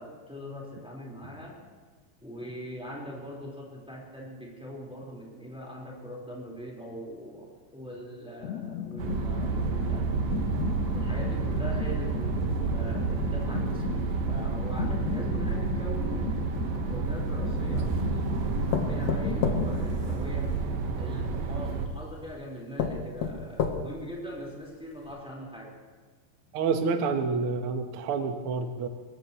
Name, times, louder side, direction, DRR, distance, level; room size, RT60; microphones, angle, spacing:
voice 1, 0.0-1.6 2.2-10.1 10.9-17.9 18.8-20.6 20.9-25.7, equal, ahead, -3 dB, 3.7 m, -41 dB
sound 1, 8.4-21.1, left 10 dB, 85° left, 1.5 m, -36 dB
Inside Car on Motorway, 9.0-21.9, right 5 dB, 85° right, 3.1 m, -30 dB
sound 2, 17.0-17.9 18.7-20.7 21.7-21.8 22.3-22.4 22.8-24.1 24.6-24.7 25.0-25.1, left 6 dB, 65° left, 2.0 m, -31 dB
voice 2, 26.5-28.9, right 5 dB, 65° right, 6 dB, 1.4 m, -28 dB
22.5 x 20.5 x 3.1 m, 1.4 s
omnidirectional pair, 4.0 m